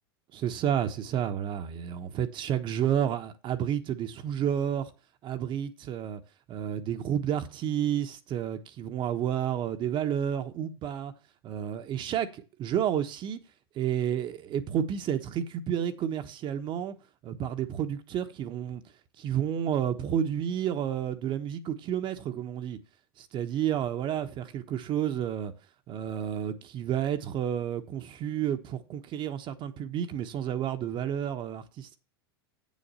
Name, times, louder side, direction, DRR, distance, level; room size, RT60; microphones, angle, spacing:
voice 1, 0.3-4.9 5.2-6.2 6.5-11.1 11.4-13.4 13.7-16.9 17.2-18.8 19.2-22.8 23.2-25.5 25.9-32.0, right 9 dB, 40° right, 1.2 m, -30 dB
8.3 x 7.4 x 5.6 m
hypercardioid pair, 90°, 13 cm